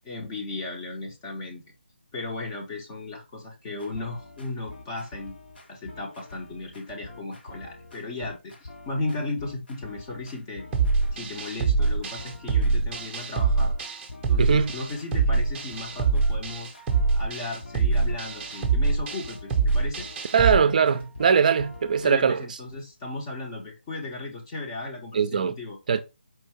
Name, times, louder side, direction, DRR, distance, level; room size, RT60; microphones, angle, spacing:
voice 1, 0.0-1.6 2.1-5.3 5.7-8.6 8.9-10.7 11.1-13.7 14.3-16.8 17.2-20.1 22.0-25.8, left 2 dB, 20° left, 0.8 m, -35 dB
sound 1, 3.7-22.1, left 2 dB, 60° left, 1.2 m, -46 dB
sound 2, 10.7-20.6, right 4 dB, 10° right, 0.7 m, -24 dB
voice 2, 14.4-14.7 20.3-22.4 25.1-25.5 25.9-26.0, right 6 dB, 45° right, 0.5 m, -21 dB
4.5 x 2.5 x 3.2 m
figure-of-eight pair, 155°, 6 cm